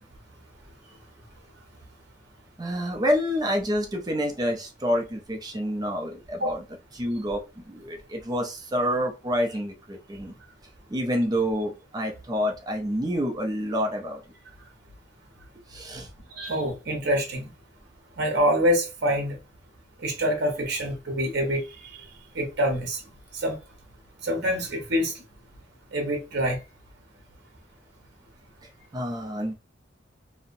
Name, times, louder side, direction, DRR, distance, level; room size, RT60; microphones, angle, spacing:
voice 1, 2.6-6.6 6.9-10.3 10.9-14.2 15.7-16.1 28.9-29.5, equal, 20° right, 0.4 m, -28 dB
voice 2, 16.3-17.5 18.2-19.4 20.0-21.9 22.3-23.0 23.3-23.6 24.2-25.1 25.9-26.6, equal, 60° right, 0.7 m, -26 dB
2.6 x 2.0 x 2.5 m
head